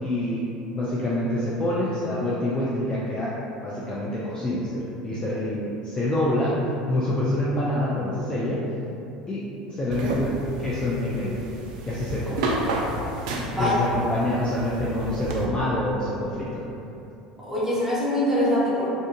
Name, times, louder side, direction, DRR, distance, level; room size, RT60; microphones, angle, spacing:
voice 1, 0.0-3.3 3.6-6.5 6.9-8.6 9.3-11.4 11.9-12.5 13.6-16.6, left 1 dB, 25° left, -7 dB, 0.5 m, -26 dB
sound 1, 9.9-15.5, right 2 dB, 65° right, 0.4 m, -31 dB
voice 2, 17.4-18.9, left 1 dB, 10° right, -9 dB, 0.9 m, -24 dB
2.6 x 2.5 x 3.6 m, 2.7 s
figure-of-eight pair, 70°, 4 cm